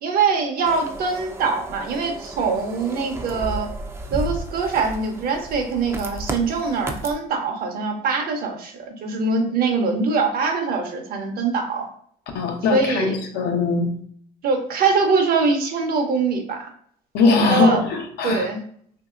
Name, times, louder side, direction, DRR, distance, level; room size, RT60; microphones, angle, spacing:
voice 1, 0.0-3.7 4.1-11.9 12.7-13.2 14.4-16.7 17.5-17.8 18.2-18.6, right 4 dB, 60° right, 4 dB, 0.7 m, -23 dB
sound 1, 0.6-7.1, right 1 dB, 15° right, 0.3 m, -33 dB
voice 2, 12.3-13.9 17.1-18.5, left 4 dB, 75° left, 4 dB, 0.6 m, -20 dB
3.0 x 2.7 x 2.4 m, 0.62 s
cardioid pair, 110°, 17 cm